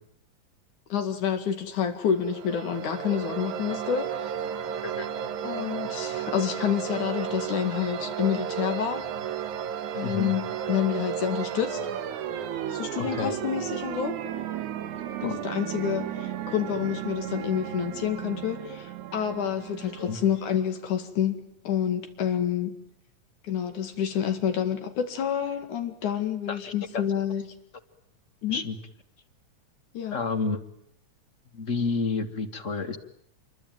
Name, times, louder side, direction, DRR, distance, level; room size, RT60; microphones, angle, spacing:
voice 1, 0.9-4.3 5.4-9.0 9.9-10.4 10.7-11.8 12.7-14.2 15.2-22.8 23.5-27.5 28.4-28.6 29.9-30.2, left 9 dB, 90° left, 7 dB, 3.7 m, -28 dB
sound 1, 2.1-20.7, right 9 dB, 85° right, 2.8 m, -34 dB
voice 2, 10.0-10.3 13.0-13.3 15.2-15.4 20.0-20.2 26.5-27.0 28.5-28.8 30.1-30.6 31.5-33.0, left 4 dB, 35° left, 11 dB, 1.5 m, -30 dB
28.0 x 23.5 x 9.1 m, 0.72 s
omnidirectional pair, 3.4 m